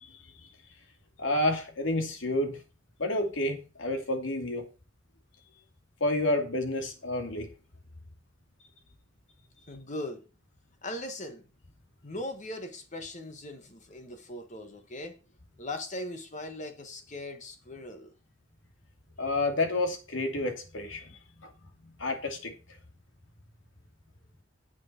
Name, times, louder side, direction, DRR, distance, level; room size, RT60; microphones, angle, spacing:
voice 1, 1.2-2.6 3.0-4.7 6.0-7.5 19.2-21.0 22.0-22.5, left 2 dB, 85° left, 2.6 m, -29 dB
voice 2, 9.7-10.3 10.8-11.4 12.0-15.2 15.6-18.1, left 1 dB, 40° left, 1.5 m, -39 dB
9.6 x 7.5 x 4.4 m
head